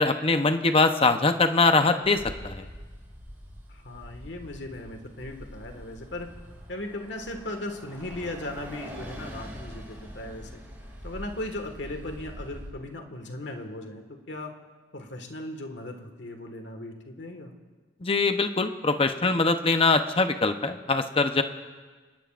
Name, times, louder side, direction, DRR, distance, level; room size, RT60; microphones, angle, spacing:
voice 1, 0.0-2.6 18.0-21.4, left 3 dB, 30° left, 7 dB, 0.8 m, -23 dB
Bus, 2.0-12.7, equal, 15° right, 5.4 m, -44 dB
voice 2, 3.7-6.4 6.7-10.6 11.0-14.5 14.9-17.5, left 1 dB, 80° left, 4 dB, 1.8 m, -37 dB
26.0 x 19.5 x 2.5 m, 1.4 s
head